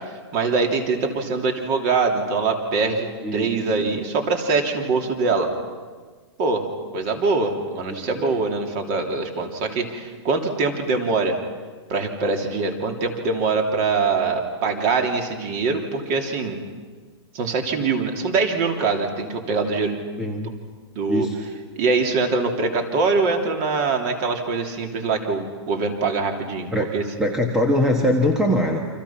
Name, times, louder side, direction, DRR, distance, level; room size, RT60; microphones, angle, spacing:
voice 1, 0.0-5.5 6.4-6.7 6.9-11.4 11.9-16.6 17.3-20.0 20.4-20.6 20.9-21.3 21.7-27.0, right 4 dB, 30° right, 3 dB, 3.1 m, -23 dB
voice 2, 3.2-3.9 7.7-8.3 20.2-20.5 21.1-21.4 26.7-26.9 27.2-28.8, left 1 dB, 5° right, 1 dB, 1.3 m, -22 dB
29.0 x 26.5 x 5.9 m, 1.5 s
hypercardioid pair, 165°, 15 cm